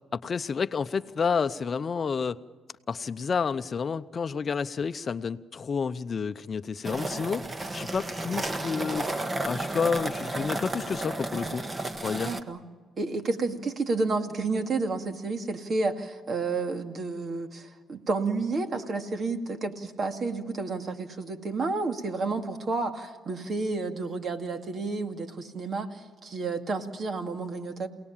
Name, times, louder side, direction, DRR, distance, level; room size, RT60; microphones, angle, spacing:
voice 1, 0.1-2.4 2.9-7.4 7.7-9.1 9.4-11.6 12.0-12.3, left 5 dB, 45° left, 13 dB, 0.7 m, -30 dB
sound 1, 6.8-12.4, right 2 dB, 25° right, 1.5 m, -33 dB
voice 2, 12.2-12.6 13.0-27.9, right 3 dB, 50° right, 6 dB, 2.2 m, -30 dB
28.0 x 18.5 x 7.3 m, 1.4 s
cardioid pair, 90°, 0 cm